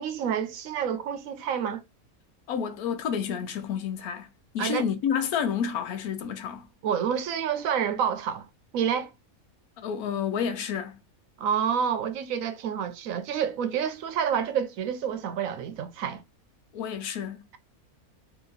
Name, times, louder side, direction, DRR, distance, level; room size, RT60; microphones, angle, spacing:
voice 1, 0.0-1.8 4.6-4.8 6.8-8.5 8.7-9.1 11.4-16.2, right 8 dB, 75° right, 0.9 m, -28 dB
voice 2, 2.5-6.7 9.8-11.0 16.7-17.5, left 7 dB, 85° left, 1.2 m, -30 dB
2.9 x 2.8 x 3.8 m
omnidirectional pair, 1.5 m